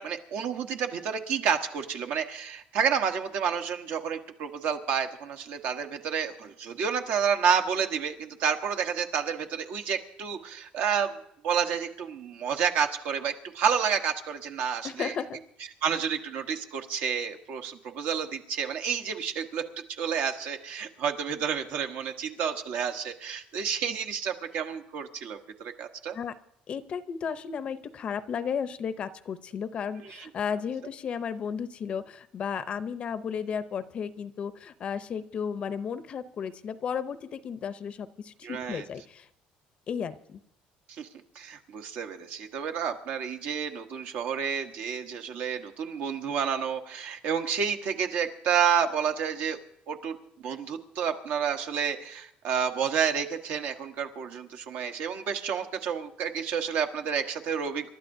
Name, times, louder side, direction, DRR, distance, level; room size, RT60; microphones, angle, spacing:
voice 1, 0.0-15.1 15.8-19.6 20.0-26.2 30.0-30.3 38.4-38.8 40.9-41.1 41.3-49.6 49.9-50.2 50.4-57.9, right 7 dB, 65° right, 6 dB, 1.2 m, -30 dB
voice 2, 14.8-15.4 26.1-26.4 26.7-39.3 39.9-40.4, left 7 dB, 40° left, 13 dB, 0.6 m, -34 dB
28.5 x 12.0 x 2.7 m, 0.76 s
cardioid pair, 140°, 3 cm